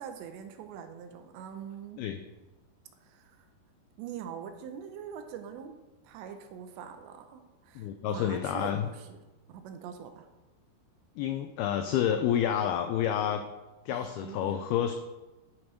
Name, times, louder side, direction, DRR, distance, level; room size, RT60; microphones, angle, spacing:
voice 1, 0.0-2.0 3.0-3.5 4.0-5.8 6.0-9.2 9.5-10.3 13.9-14.7, right 8 dB, 80° right, 7 dB, 3.0 m, -43 dB
voice 2, 7.8-8.9 11.2-13.4 13.9-14.9, left 10 dB, 90° left, 7 dB, 2.2 m, -29 dB
11.5 x 6.2 x 5.0 m, 1.1 s
omnidirectional pair, 5.1 m